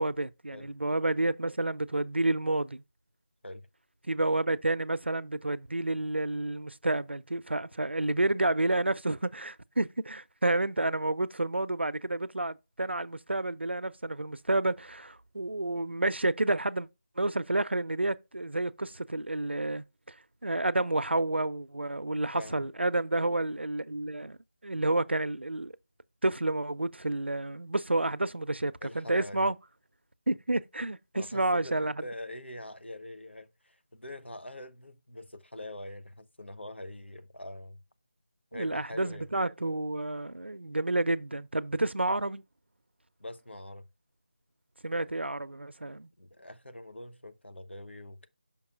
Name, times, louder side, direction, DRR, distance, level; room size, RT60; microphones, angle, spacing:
voice 1, 0.0-2.8 4.1-16.9 17.2-20.1 20.4-24.4 24.6-25.7 26.2-29.6 30.3-31.9 38.5-42.4 44.8-46.1, right 2 dB, 80° right, 0.6 m, -30 dB
voice 2, 22.3-22.6 28.8-29.5 31.1-37.8 38.5-39.3 43.2-43.9 46.2-48.3, left 1 dB, 85° left, 1.0 m, -44 dB
5.9 x 5.3 x 4.5 m
figure-of-eight pair, 165°, 6 cm